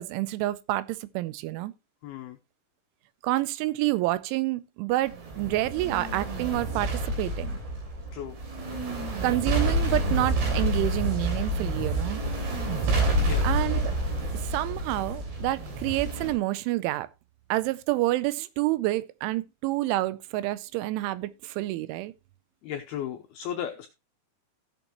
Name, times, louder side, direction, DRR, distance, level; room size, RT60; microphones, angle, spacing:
voice 1, 0.0-1.7 3.2-7.6 9.2-12.2 13.4-13.9 14.3-17.1 17.5-22.1, right 17 dB, 85° right, 3.1 m, -28 dB
voice 2, 2.0-2.4 8.1-8.4 13.2-13.5 22.6-23.9, left 9 dB, 85° left, 2.2 m, -35 dB
sound 1, 5.1-16.3, right 1 dB, 65° right, 5.2 m, -28 dB
15.5 x 7.2 x 3.0 m
omnidirectional pair, 5.4 m